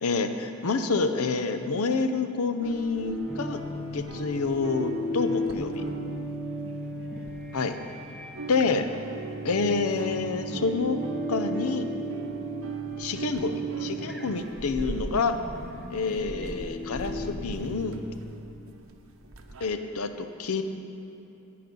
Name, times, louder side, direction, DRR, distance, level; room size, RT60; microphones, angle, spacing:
voice 1, 0.0-3.6 3.9-5.8 7.5-7.8 8.5-8.9 9.4-11.0 11.3-11.9 13.0-15.4 15.9-18.0 19.6-20.6, left 4 dB, 75° left, 8 dB, 0.7 m, -28 dB
sound 1, 2.6-8.0 8.2-19.7, right 3 dB, 65° right, 0.8 m, -40 dB
sound 2, 3.3-18.4, equal, ahead, 0.7 m, -36 dB
17.0 x 5.8 x 5.4 m, 2.9 s
head